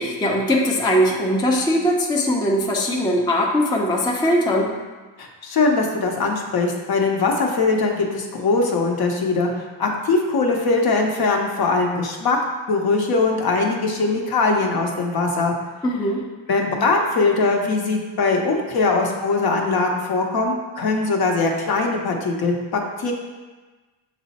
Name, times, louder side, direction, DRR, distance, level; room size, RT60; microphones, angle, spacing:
voice 1, 0.0-4.7 15.8-16.2, equal, 10° left, -1 dB, 0.4 m, -20 dB
voice 2, 5.2-9.5 9.8-12.4 12.7-15.5 16.5-23.1, left 3 dB, 55° left, 1 dB, 0.8 m, -21 dB
6.1 x 2.1 x 4.1 m, 1.3 s
cardioid pair, 90°, 46 cm